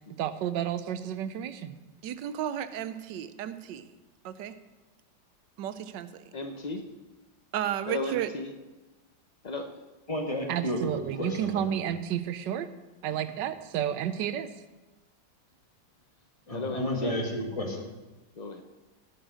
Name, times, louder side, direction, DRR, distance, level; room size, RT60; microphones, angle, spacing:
voice 1, 0.2-1.8 2.0-3.9 4.2-4.5 5.6-6.2 7.5-8.3 10.5-12.7 13.0-14.5, right 10 dB, 75° right, 12 dB, 1.3 m, -32 dB
voice 2, 6.3-6.8 7.9-8.5 9.4-9.6 16.5-17.2 18.4-18.6, left 2 dB, 75° left, 5 dB, 0.3 m, -34 dB
voice 3, 10.1-11.7 16.5-17.8, left 1 dB, 20° left, 1 dB, 1.8 m, -32 dB
16.0 x 6.4 x 6.3 m, 1.1 s
omnidirectional pair, 2.0 m